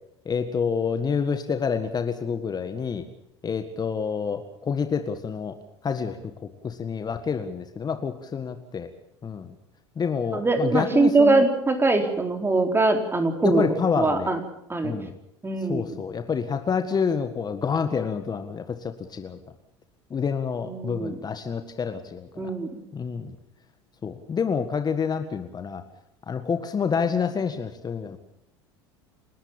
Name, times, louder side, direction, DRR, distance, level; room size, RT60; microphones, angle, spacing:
voice 1, 0.3-3.0 3.4-5.6 5.8-6.3 6.6-8.9 9.2-9.5 10.0-11.5 13.4-14.3 14.8-15.2 15.6-19.4 20.1-22.5 22.9-23.4 24.0-25.8 26.3-28.2, left 6 dB, 30° left, 8 dB, 1.8 m, -28 dB
voice 2, 10.3-13.7 14.0-14.4 14.7-15.0 15.4-15.9 20.6-21.1 22.4-22.8, right 3 dB, 15° right, 5 dB, 4.2 m, -22 dB
29.0 x 12.5 x 8.9 m, 0.79 s
hypercardioid pair, 75°, 15 cm